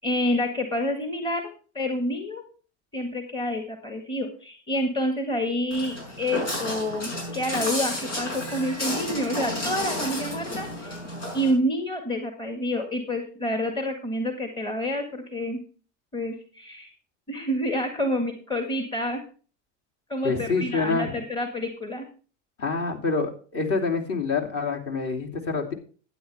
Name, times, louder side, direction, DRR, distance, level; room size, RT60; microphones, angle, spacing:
voice 1, 0.0-1.5 1.7-2.4 2.9-11.0 11.3-15.6 16.1-16.9 17.3-19.2 20.1-22.1, equal, 15° left, 5 dB, 1.7 m, -28 dB
Walk footsteps, 5.7-11.5, left 1 dB, 85° left, 6.0 m, -31 dB
voice 2, 20.2-21.1 22.6-25.7, left 4 dB, 40° left, 2 dB, 2.9 m, -26 dB
12.5 x 9.5 x 3.4 m, 0.39 s
hypercardioid pair, 105°, 36 cm